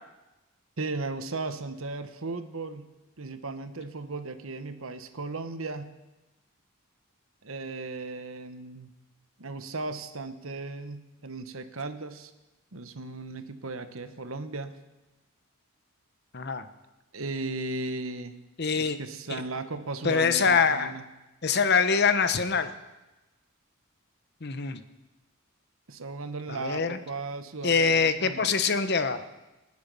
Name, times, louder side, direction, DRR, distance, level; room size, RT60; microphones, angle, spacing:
voice 1, 0.8-2.9 3.2-5.9 7.4-8.9 9.4-12.3 12.7-14.7 17.1-18.4 18.8-21.0 25.9-28.5, right 3 dB, 70° right, 10 dB, 1.2 m, -36 dB
voice 2, 16.3-16.7 18.6-19.0 20.0-20.9 21.4-22.7 24.4-24.8 26.5-27.0 27.6-29.2, left 5 dB, 50° left, 11 dB, 0.9 m, -24 dB
27.0 x 9.6 x 5.4 m, 1.1 s
head